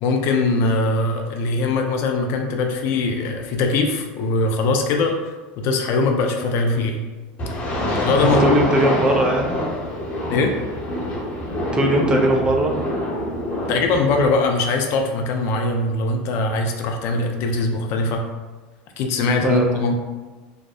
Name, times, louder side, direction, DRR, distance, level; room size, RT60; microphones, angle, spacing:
voice 1, 0.0-5.2 5.6-7.0 7.8-8.6 10.3-10.5 13.7-18.2 19.0-19.9, left 3 dB, 55° left, 3 dB, 0.4 m, -21 dB
sound 1, 7.4-14.3, left 1 dB, 35° left, 0.9 m, -25 dB
voice 2, 8.4-9.6 11.7-12.7 19.4-19.8, right 1 dB, 20° right, 1 dB, 0.4 m, -19 dB
2.7 x 2.0 x 2.3 m, 1.2 s
supercardioid pair, 110°, 5 cm